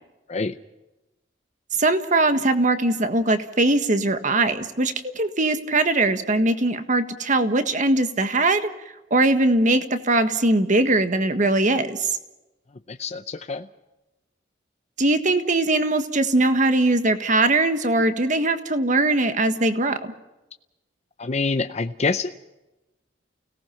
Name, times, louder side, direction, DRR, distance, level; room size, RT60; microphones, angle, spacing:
voice 1, 1.8-8.7 9.1-12.2 15.0-20.1, right 2 dB, 45° right, 9 dB, 1.6 m, -21 dB
voice 2, 12.9-13.6 21.2-22.3, left 3 dB, 40° left, 8 dB, 0.6 m, -26 dB
30.0 x 18.0 x 5.8 m, 1.0 s
head